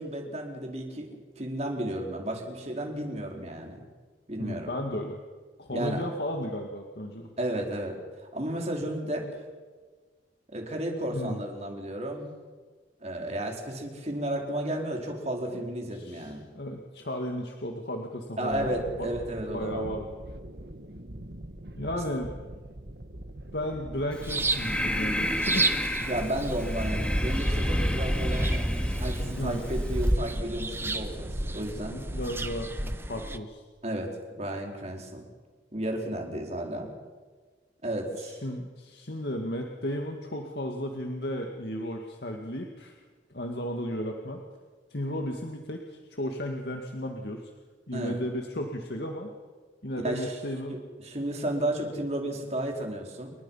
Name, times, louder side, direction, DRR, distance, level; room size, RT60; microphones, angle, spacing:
voice 1, 0.0-3.8 4.3-4.7 5.7-6.1 7.4-9.3 10.5-12.3 13.0-16.4 18.4-19.9 26.0-28.7 29.0-32.0 33.8-34.1 34.4-35.2 35.7-36.9 37.8-38.4 47.9-48.2 50.0-50.4 50.7-53.3, right 1 dB, 35° right, 1 dB, 4.6 m, -33 dB
voice 2, 4.4-5.2 5.6-7.3 11.1-11.4 15.5-19.1 19.5-20.1 21.8-22.3 23.5-25.7 29.4-29.6 31.9-33.6 38.2-43.0 43.3-44.4 44.9-47.5 47.9-49.3 49.8-50.8, equal, 65° left, 2 dB, 2.1 m, -34 dB
sound 1, 18.5-32.4, right 1 dB, 65° right, 1.7 m, -43 dB
Breathing, 24.1-30.1, equal, 5° left, 2.2 m, -29 dB
sound 2, 24.2-33.4, right 2 dB, 15° right, 1.1 m, -32 dB
29.5 x 23.5 x 5.7 m, 1.4 s
head